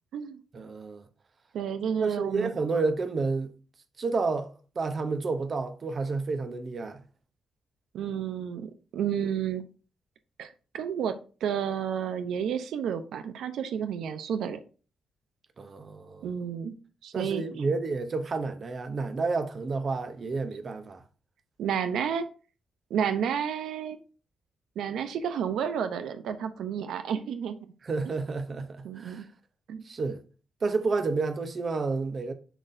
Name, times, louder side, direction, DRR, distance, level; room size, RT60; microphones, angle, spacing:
voice 1, 0.5-1.0 2.0-3.5 4.0-7.0 15.6-16.3 17.1-21.0 27.8-29.2 29.8-30.2 30.6-32.3, right 3 dB, 30° right, 0.7 m, -30 dB
voice 2, 1.5-2.5 7.9-9.6 10.4-14.6 16.2-16.7 17.0-17.4 21.6-22.3 22.9-24.0 24.8-27.6 28.8-29.3 29.7-29.8, right 8 dB, 80° right, 0.6 m, -31 dB
10.0 x 4.0 x 2.6 m
wide cardioid pair, 175°, 0 cm